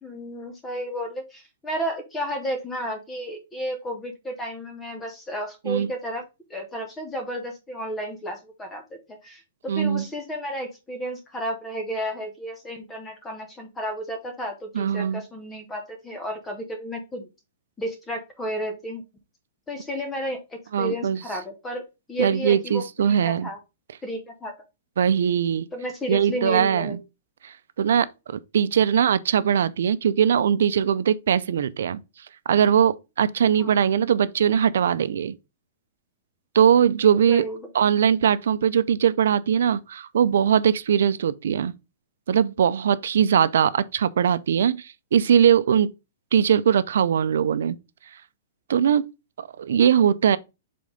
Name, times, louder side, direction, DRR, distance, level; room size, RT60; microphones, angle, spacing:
voice 1, 0.0-6.2 6.5-17.3 17.8-19.0 19.7-21.8 22.1-23.6 24.0-24.6 25.7-27.0 33.6-33.7 37.1-37.6, equal, 10° left, 0.8 m, -32 dB
voice 2, 9.7-10.0 14.7-15.2 20.7-21.2 22.2-23.5 25.0-25.7 26.1-27.0 27.4-32.0 32.5-35.4 36.5-37.5 37.7-41.7 42.3-45.9 46.3-47.8 48.7-49.1 49.4-50.4, right 8 dB, 70° right, 0.5 m, -21 dB
5.2 x 3.8 x 5.1 m
hypercardioid pair, 175°, 0 cm